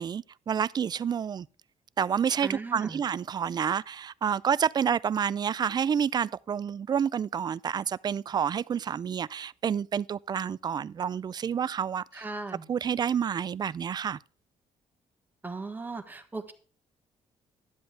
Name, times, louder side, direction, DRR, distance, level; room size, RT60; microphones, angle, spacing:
voice 1, 0.0-1.5 2.0-12.2 12.7-14.2, right 8 dB, 35° right, 0.4 m, -29 dB
voice 2, 2.4-3.0 12.1-12.6 15.4-16.5, right 3 dB, 15° right, 1.5 m, -37 dB
12.0 x 7.8 x 3.4 m
cardioid pair, 115°, 12 cm